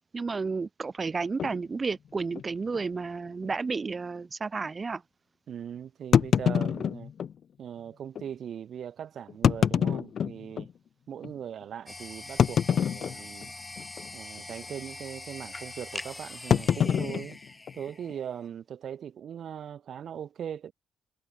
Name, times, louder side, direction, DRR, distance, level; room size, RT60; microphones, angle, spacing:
voice 1, 0.1-5.0, right 4 dB, 30° right, 1.2 m, -32 dB
sound 1, 1.4-1.6 2.3-2.4 2.7-2.8 3.4-3.5 6.1-7.3 8.2-8.3 9.3-10.7 11.2-11.3 12.4-13.5 13.8-14.1 14.4-14.7 16.5-18.1, left 8 dB, 55° left, 0.6 m, -26 dB
voice 2, 5.5-7.1 7.6-10.7 11.1-13.5 14.1-17.4 17.7-20.7, right 9 dB, 60° right, 7.2 m, -40 dB
sound 2, 11.9-18.5, left 2 dB, 15° left, 1.5 m, -43 dB
cardioid pair, 90°, 0 cm